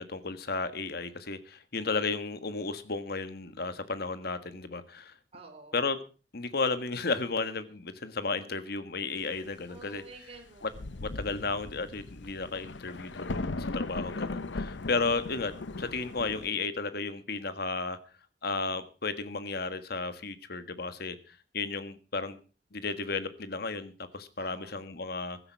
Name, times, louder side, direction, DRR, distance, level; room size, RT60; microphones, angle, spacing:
voice 1, 0.0-5.1 5.7-6.0 6.3-10.0 10.6-10.7 11.0-18.0 18.4-22.4 22.7-25.4, left 4 dB, 60° left, 11 dB, 1.5 m, -33 dB
voice 2, 5.3-5.8 9.7-11.0 24.4-24.9, right 3 dB, 35° right, 2 dB, 3.8 m, -50 dB
Thunder, 10.3-10.4 10.7-16.5, left 2 dB, 90° left, 0.9 m, -37 dB
15.5 x 13.0 x 4.6 m, 0.36 s
head